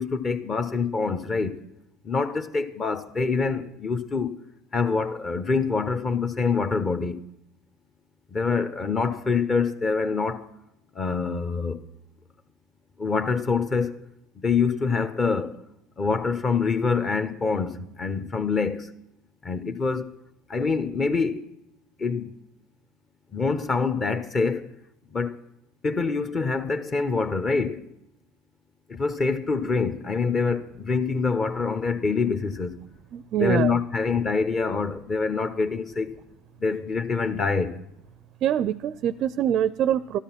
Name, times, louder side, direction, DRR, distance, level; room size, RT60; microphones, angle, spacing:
voice 1, 0.0-1.6 2.0-4.3 4.7-7.2 8.3-10.5 10.9-11.8 13.0-13.9 14.4-15.6 16.0-18.9 19.4-20.1 20.5-21.4 22.0-22.3 23.3-24.7 25.1-25.3 25.8-27.9 28.9-32.8 33.4-36.2 36.6-37.8, left 4 dB, 30° left, 1.0 m, -25 dB
voice 2, 33.1-33.7 38.4-40.2, right 10 dB, 45° right, 0.4 m, -24 dB
13.0 x 13.0 x 5.9 m
figure-of-eight pair, 75°, 0 cm